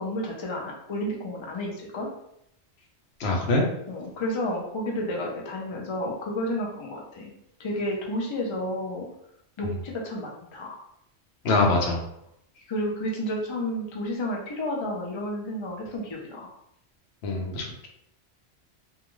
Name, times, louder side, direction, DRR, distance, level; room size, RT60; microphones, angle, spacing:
voice 1, 0.0-2.1 3.9-7.3 7.6-9.1 9.6-10.8 12.6-16.5, left 1 dB, 40° left, -1 dB, 0.4 m, -31 dB
voice 2, 3.2-3.6 11.4-12.0 17.2-17.6, left 2 dB, 75° left, 0 dB, 0.9 m, -23 dB
2.4 x 2.3 x 3.0 m, 0.77 s
omnidirectional pair, 1.1 m